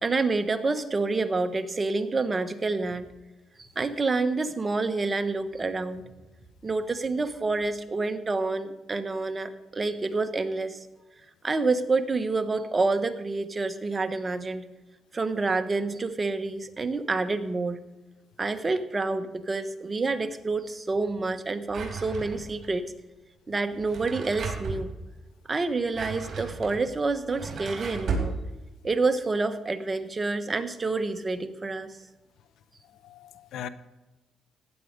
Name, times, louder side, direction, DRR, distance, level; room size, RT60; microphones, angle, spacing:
voice 1, 0.0-3.1 3.6-6.1 6.6-10.9 11.4-14.6 15.1-17.8 18.4-22.9 23.5-24.9 25.5-28.4 28.8-32.0, right 3 dB, 30° right, 10 dB, 1.2 m, -28 dB
Drawer open or close, 21.7-22.7 23.7-24.8 25.7-28.3, right 5 dB, 55° right, 4.3 m, -34 dB
voice 2, 32.9-33.7, left 9 dB, 80° left, 14 dB, 0.9 m, -40 dB
15.5 x 9.9 x 5.2 m, 1.1 s
cardioid pair, 90°, 0 cm